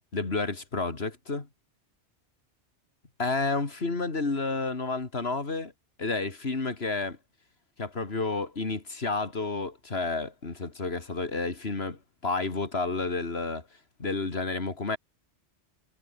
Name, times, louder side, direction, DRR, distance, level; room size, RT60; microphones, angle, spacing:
voice 1, 0.1-1.5 3.2-5.7 6.0-7.2 7.8-13.6 14.0-15.0, left 3 dB, 65° left, 2.8 m, -30 dB
omnidirectional pair, 1.1 m